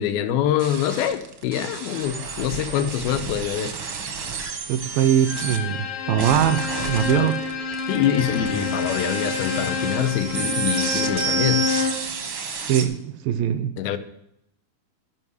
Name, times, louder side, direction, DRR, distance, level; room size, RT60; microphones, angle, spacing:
voice 1, 0.0-3.8 7.1-7.3 7.9-11.7 13.8-14.0, left 10 dB, 90° left, 2.7 m, -25 dB
sound 1, 0.6-5.6 6.2-12.9, right 6 dB, 60° right, 1.3 m, -31 dB
voice 2, 4.7-7.4 12.6-13.7, right 10 dB, 80° right, 2.2 m, -22 dB
Bowed string instrument, 5.3-12.1, left 4 dB, 70° left, 2.6 m, -28 dB
12.5 x 5.5 x 7.8 m
omnidirectional pair, 4.4 m